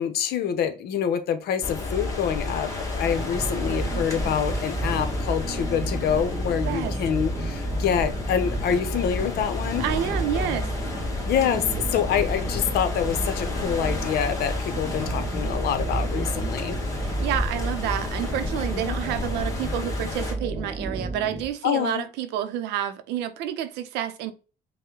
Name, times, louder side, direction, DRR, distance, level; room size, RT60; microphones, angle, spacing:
voice 1, 0.0-9.8 11.3-16.8 18.7-19.0 21.6-22.0, left 8 dB, 70° left, 0.8 m, -26 dB
sound 1, 1.6-20.3, left 2 dB, 20° left, 1.9 m, -31 dB
sound 2, 3.0-21.5, right 3 dB, 10° right, 0.6 m, -33 dB
voice 2, 9.8-10.7 17.0-24.3, right 10 dB, 90° right, 0.6 m, -29 dB
5.4 x 2.2 x 3.7 m
cardioid pair, 110°, 17 cm